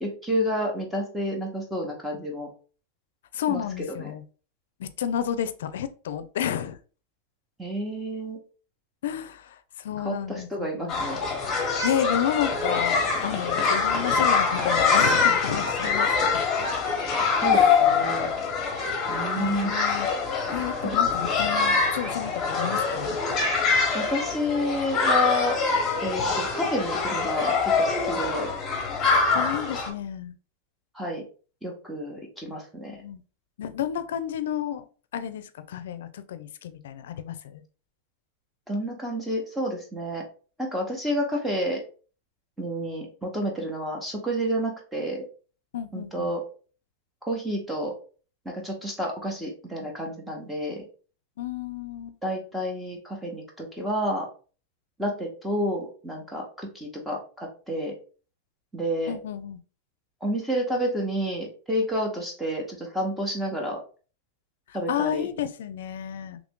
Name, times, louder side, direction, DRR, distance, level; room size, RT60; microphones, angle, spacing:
voice 1, 0.0-2.5 3.5-3.6 4.0-4.1 7.6-8.4 10.0-10.2 10.5-11.2 17.4-18.3 19.1-19.8 20.8-21.0 23.9-25.6 26.0-28.6 30.9-31.2 31.6-33.0 38.7-40.2 40.6-41.8 42.6-45.2 45.9-46.4 47.2-48.0 48.4-50.8 52.2-54.3 55.0-58.0 58.7-59.1 60.2-63.8 64.7-65.3, equal, 5° right, -1 dB, 0.9 m, -30 dB
voice 2, 3.3-4.2 4.8-6.8 9.0-11.0 11.8-16.4 17.5-17.8 19.4-20.1 20.5-23.2 29.0-30.4 32.9-33.2 33.6-34.8 35.1-37.6 45.7-46.3 51.4-52.2 59.1-59.6 64.7-66.4, left 10 dB, 80° left, 12 dB, 0.4 m, -31 dB
sound 1, 10.9-29.9, left 5 dB, 25° left, 1.0 m, -24 dB
3.0 x 2.5 x 3.6 m, 0.38 s
supercardioid pair, 140°, 0 cm